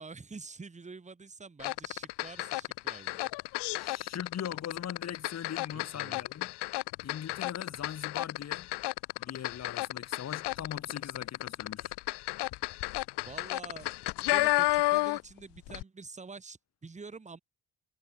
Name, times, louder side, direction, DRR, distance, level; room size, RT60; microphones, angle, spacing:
voice 1, 0.0-3.3 5.7-6.2 13.2-17.4, right 4 dB, 15° right, 2.6 m, -47 dB
sound 1, 1.6-15.4 15.7-15.8, left 20 dB, 80° left, 0.5 m, -32 dB
voice 2, 3.7-6.5 7.0-8.7 9.2-11.9, left 9 dB, 40° left, 1.8 m, -41 dB
cardioid pair, 165°, 40 cm